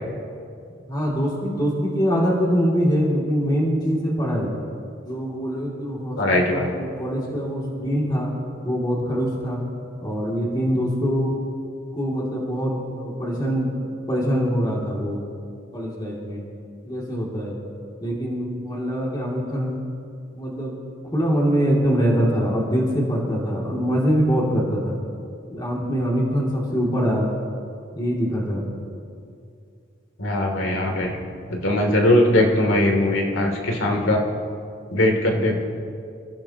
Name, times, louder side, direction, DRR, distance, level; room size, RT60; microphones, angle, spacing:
voice 1, 0.9-4.5 5.0-8.3 8.6-9.6 10.0-11.3 11.9-15.2 15.7-16.4 16.8-17.6 18.0-19.8 20.3-20.7 21.1-25.0 25.5-27.3 27.9-28.7, equal, 20° left, -3 dB, 2.6 m, -23 dB
voice 2, 6.2-6.7 30.2-31.2 31.6-34.2 34.9-35.6, left 1 dB, 90° left, 1 dB, 2.9 m, -20 dB
28.5 x 14.5 x 3.0 m, 2.4 s
head